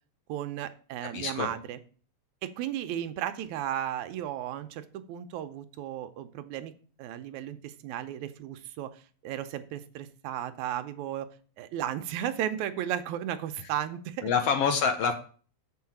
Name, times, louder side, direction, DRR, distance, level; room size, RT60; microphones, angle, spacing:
voice 1, 0.3-1.8 2.4-6.7 7.0-11.3 11.6-14.3, right 11 dB, 85° right, 10 dB, 2.1 m, -34 dB
voice 2, 1.0-1.5 13.6-13.7 14.2-15.1, left 6 dB, 70° left, 7 dB, 1.7 m, -27 dB
7.1 x 4.7 x 7.1 m, 0.41 s
omnidirectional pair, 3.3 m